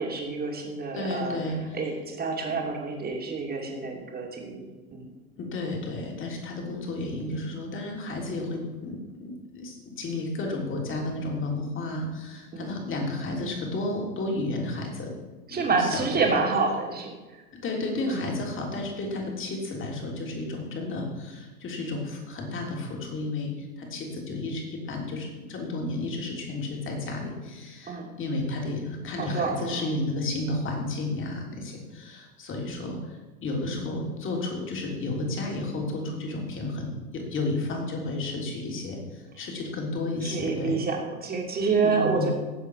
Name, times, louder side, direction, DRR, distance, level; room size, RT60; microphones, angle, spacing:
voice 1, 0.0-1.4 1.7-4.6 4.9-5.1 12.5-12.7 15.5-17.4 18.1-18.2 27.9-28.1 29.2-29.9 40.2-42.3, right 4 dB, 20° right, 1 dB, 2.8 m, -28 dB
voice 2, 0.9-1.6 5.4-15.1 15.5-16.3 17.5-40.8 41.8-42.3, left 2 dB, 25° left, 0 dB, 3.4 m, -32 dB
18.0 x 7.4 x 4.8 m, 1.2 s
figure-of-eight pair, 90°, 45 cm